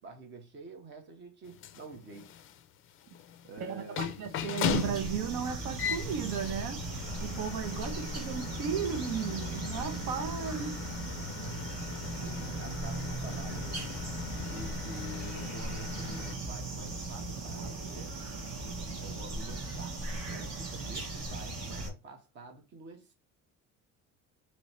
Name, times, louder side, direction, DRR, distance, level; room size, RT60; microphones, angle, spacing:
voice 1, 0.0-2.4 2.9-3.0 3.4-4.1 11.4-13.9 14.5-18.2 19.0-23.1, right 2 dB, 35° right, 1.1 m, -48 dB
sound 1, 1.4-16.4, left 9 dB, 40° left, 0.4 m, -39 dB
voice 2, 3.6-10.8, right 7 dB, 80° right, 0.8 m, -35 dB
sound 2, 4.6-21.9, right 3 dB, 50° right, 1.7 m, -38 dB
3.1 x 3.0 x 4.2 m
cardioid pair, 170°, 33 cm